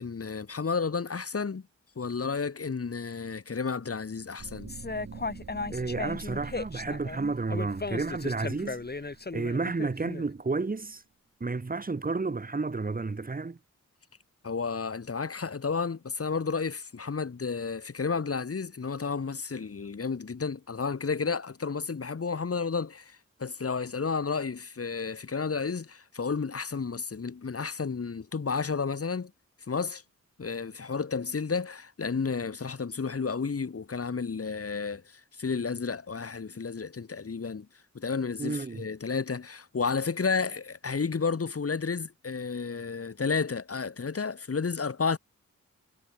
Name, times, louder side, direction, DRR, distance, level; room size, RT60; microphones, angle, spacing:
voice 1, 0.0-1.6 2.0-4.7 14.4-29.3 29.7-30.0 30.4-37.7 37.9-45.2, left 5 dB, 55° left, 2.9 m, -32 dB
sound 1, 4.4-10.4, right 5 dB, 65° right, 4.4 m, -46 dB
sound 2, 4.7-10.2, left 3 dB, 35° left, 4.5 m, -36 dB
voice 2, 5.7-8.8 9.3-11.0 11.4-13.6 38.4-38.8, right 3 dB, 30° right, 1.7 m, -31 dB
wide cardioid pair, 95°, 29 cm